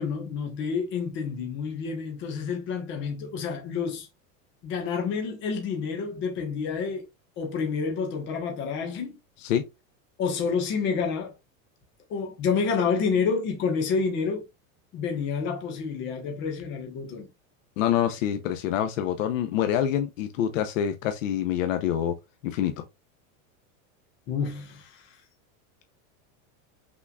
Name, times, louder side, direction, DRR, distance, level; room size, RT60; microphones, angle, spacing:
voice 1, 0.0-4.1 4.6-7.0 7.4-9.2 10.2-11.3 12.1-14.4 14.9-17.3 24.3-25.0, left 5 dB, 30° left, 1.3 m, -29 dB
voice 2, 17.8-22.2 22.4-22.8, left 10 dB, 70° left, 0.8 m, -26 dB
6.0 x 3.6 x 2.3 m
supercardioid pair, 180°, 41 cm